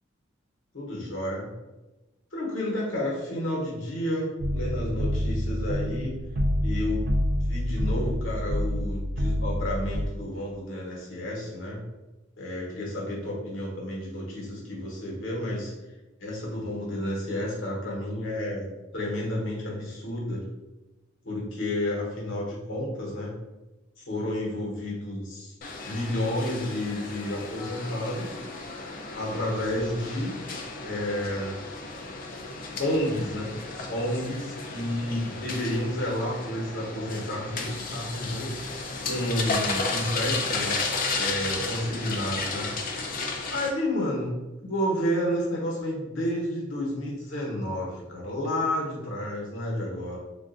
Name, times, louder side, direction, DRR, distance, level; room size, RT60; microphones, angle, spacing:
voice 1, 0.7-1.5 2.3-6.2 6.6-11.8 12.4-15.7 16.2-18.7 18.9-20.4 21.2-23.3 24.0-25.5 25.8-28.4 29.1-30.4 30.8-31.6 32.8-33.5 33.9-38.5 39.0-42.7 43.5-50.2, left 1 dB, 85° left, -3 dB, 1.0 m, -31 dB
sound 1, 4.4-10.1, equal, 50° right, 0.3 m, -27 dB
sound 2, 25.6-43.7, left 3 dB, 45° left, 0.4 m, -33 dB
3.3 x 2.5 x 2.5 m, 1.1 s
head